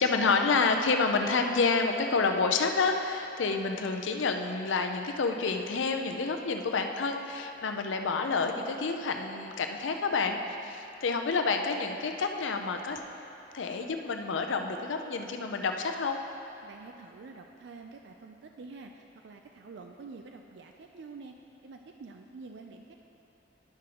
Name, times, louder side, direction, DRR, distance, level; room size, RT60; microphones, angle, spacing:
voice 1, 0.0-13.0 13.5-16.2, left 4 dB, 90° left, 5 dB, 0.5 m, -29 dB
voice 2, 16.6-21.3 21.6-23.0, right 4 dB, 70° right, 3 dB, 0.4 m, -47 dB
11.0 x 5.9 x 3.7 m, 2.9 s
head